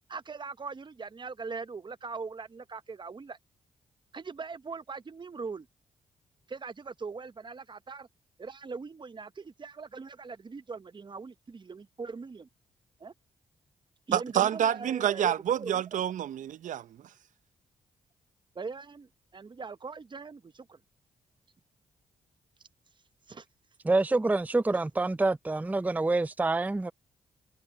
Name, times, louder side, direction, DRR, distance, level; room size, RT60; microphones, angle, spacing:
voice 1, 0.1-3.4 4.1-5.7 6.5-8.1 8.4-12.5 13.0-13.1 14.1-16.0 18.5-20.8 23.3-23.4, right 4 dB, 35° right, 1.0 m, -41 dB
voice 2, 14.1-17.1, right 10 dB, 70° right, 0.6 m, -28 dB
voice 3, 23.8-26.9, right 2 dB, 10° right, 0.5 m, -27 dB
supercardioid pair, 60°, 13 cm